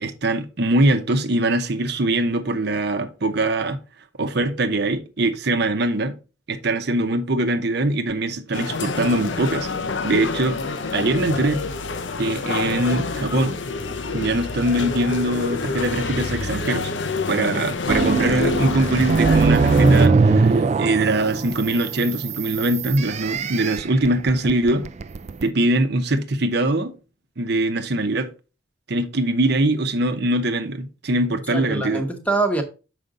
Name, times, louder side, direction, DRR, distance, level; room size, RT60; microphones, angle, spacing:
voice 1, 0.0-3.8 4.2-6.2 6.5-9.7 10.0-10.6 10.9-11.6 12.2-13.6 14.1-16.9 17.3-24.9 25.4-26.9 27.4-28.3 28.9-32.0, right 2 dB, 60° right, 0.8 m, -22 dB
sound 1, 8.5-20.1, left 4 dB, 75° left, 0.8 m, -27 dB
sound 2, 17.9-25.5, right 4 dB, 35° right, 0.3 m, -20 dB
voice 2, 19.8-20.6 31.5-32.6, right 2 dB, 10° left, 1.0 m, -25 dB
6.7 x 5.1 x 3.7 m
head